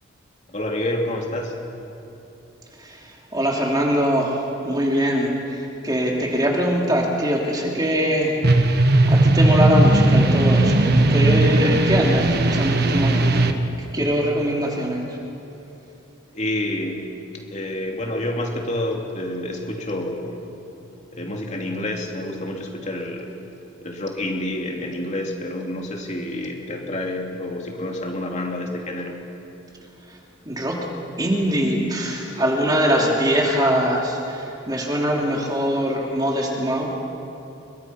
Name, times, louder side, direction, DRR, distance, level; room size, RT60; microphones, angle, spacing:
voice 1, 0.5-1.6 16.3-17.1 17.5-20.4 21.1-23.3 23.8-29.2 32.2-32.5, left 1 dB, 35° left, 0 dB, 2.8 m, -28 dB
voice 2, 3.3-8.7 9.1-13.5 13.9-15.1 30.4-30.8 31.2-36.9, equal, 20° right, -1 dB, 3.0 m, -22 dB
sound 1, 8.4-13.5, right 2 dB, 50° right, 1.4 m, -17 dB
30.0 x 23.5 x 5.8 m, 2.9 s
head